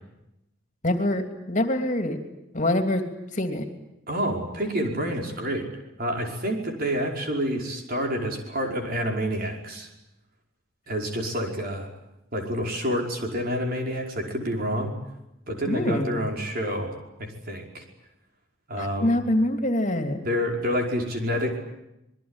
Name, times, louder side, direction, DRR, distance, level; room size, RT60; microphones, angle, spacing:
voice 1, 0.8-2.2 2.5-3.0 3.3-3.6 15.7-16.2 18.8-20.2, left 1 dB, 40° left, 6 dB, 3.0 m, -25 dB
voice 2, 4.1-5.7 6.0-9.9 10.9-11.9 12.3-14.9 15.5-17.8 18.7-19.2 20.2-21.6, equal, 45° right, 2 dB, 5.2 m, -28 dB
26.5 x 22.0 x 9.8 m, 0.88 s
head